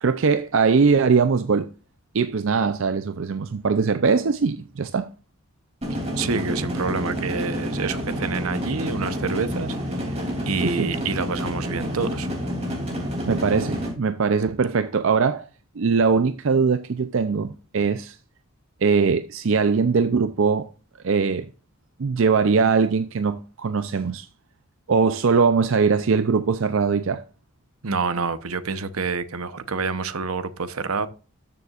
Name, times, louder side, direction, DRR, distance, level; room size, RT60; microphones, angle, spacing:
voice 1, 0.0-1.7 2.1-5.1 10.6-10.9 13.3-15.5 15.8-18.2 18.8-20.7 21.0-21.5 22.0-24.3 24.9-27.2, right 5 dB, 65° right, 0.5 m, -21 dB
sound 1, 5.8-13.9, equal, 30° right, 2.9 m, -29 dB
voice 2, 6.2-10.2 10.5-12.3 27.8-31.1, right 4 dB, 85° right, 0.8 m, -27 dB
13.0 x 6.9 x 2.4 m
head